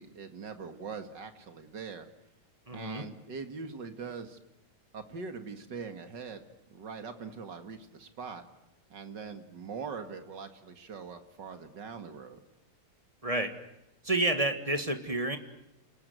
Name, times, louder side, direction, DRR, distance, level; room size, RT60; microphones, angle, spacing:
voice 1, 0.0-2.1 2.7-4.4 4.9-6.4 6.7-8.4 8.9-12.4, right 5 dB, 55° right, 8 dB, 2.6 m, -42 dB
voice 2, 2.7-3.0 13.2-13.5 14.0-15.4, right 2 dB, 15° right, 7 dB, 1.9 m, -29 dB
29.5 x 19.0 x 9.4 m, 0.91 s
omnidirectional pair, 2.3 m